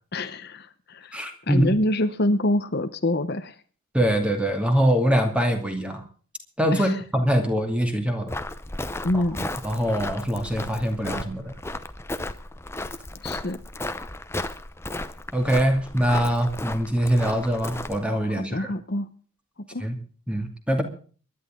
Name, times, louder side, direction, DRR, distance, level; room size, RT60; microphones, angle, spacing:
voice 1, 0.1-3.6 6.7-7.0 9.0-9.5 13.2-13.6 18.2-19.1 19.7-19.9, left 1 dB, 50° left, 9 dB, 1.0 m, -26 dB
voice 2, 1.1-1.8 3.9-6.0 6.6-8.3 9.1-9.2 9.6-11.5 15.3-18.7 19.8-20.0 20.3-20.8, equal, 5° right, 5 dB, 2.5 m, -23 dB
Walk footsteps, 8.3-18.0, left 2 dB, 10° left, 0.7 m, -34 dB
24.5 x 11.5 x 3.8 m, 0.41 s
head